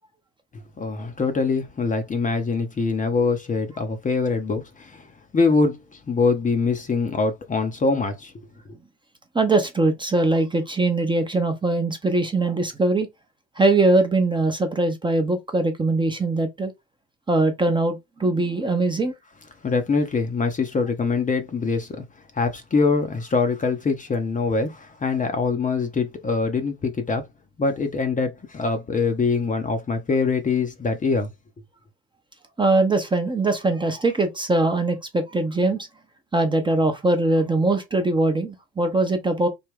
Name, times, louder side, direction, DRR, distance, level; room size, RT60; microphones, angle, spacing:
voice 1, 0.5-5.1 5.3-8.3 19.6-22.0 22.3-27.3 27.6-31.3, left 4 dB, 20° left, 0.7 m, -23 dB
voice 2, 9.3-13.1 13.6-16.7 17.3-19.1 32.6-35.9 36.3-39.5, right 2 dB, 15° right, 0.7 m, -21 dB
3.4 x 2.2 x 3.5 m
hypercardioid pair, 65°, 36 cm